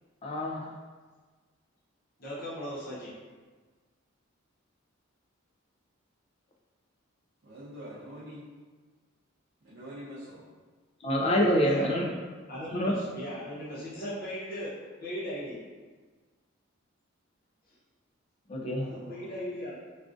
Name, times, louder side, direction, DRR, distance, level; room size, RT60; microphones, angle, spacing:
voice 1, 0.2-0.7 11.0-12.0 12.7-12.9 18.5-18.9, equal, 30° left, -1 dB, 0.3 m, -26 dB
voice 2, 2.2-3.1 11.6-12.2 12.5-14.7 15.0-15.6 18.8-19.8, equal, 45° left, -9 dB, 0.8 m, -37 dB
voice 3, 7.4-8.4 9.6-10.5 18.9-19.4, equal, 60° right, -9 dB, 0.7 m, -45 dB
3.6 x 2.4 x 2.5 m, 1.4 s
head